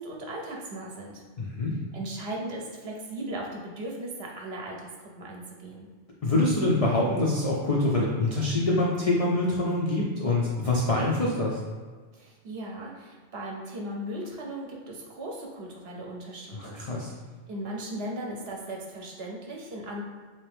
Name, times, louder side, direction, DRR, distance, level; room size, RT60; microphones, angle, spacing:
voice 1, 0.0-1.2 1.9-5.9 12.1-16.8 17.5-20.0, right 1 dB, 60° right, -1 dB, 0.9 m, -37 dB
voice 2, 1.4-1.8 6.2-11.6 16.5-17.1, left 2 dB, 55° left, -4 dB, 0.4 m, -25 dB
3.4 x 2.9 x 3.4 m, 1.5 s
omnidirectional pair, 1.3 m